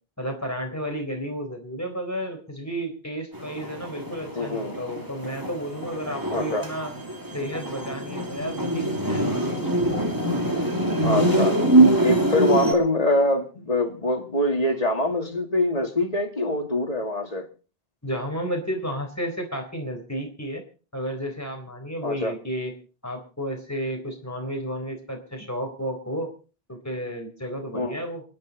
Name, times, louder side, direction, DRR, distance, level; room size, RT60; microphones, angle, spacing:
voice 1, 0.2-6.9 7.3-9.8 18.0-20.6 20.9-22.7 23.0-26.3 26.7-28.2, equal, 15° left, 3 dB, 3.8 m, -32 dB
sound 1, 3.3-12.7, right 1 dB, 20° right, 2.4 m, -24 dB
voice 2, 4.3-4.7 6.3-6.6 11.0-11.6 12.0-17.5 22.0-22.3 27.7-28.0, left 1 dB, 40° left, 3 dB, 2.3 m, -24 dB
27.5 x 10.0 x 4.1 m, 0.37 s
omnidirectional pair, 1.0 m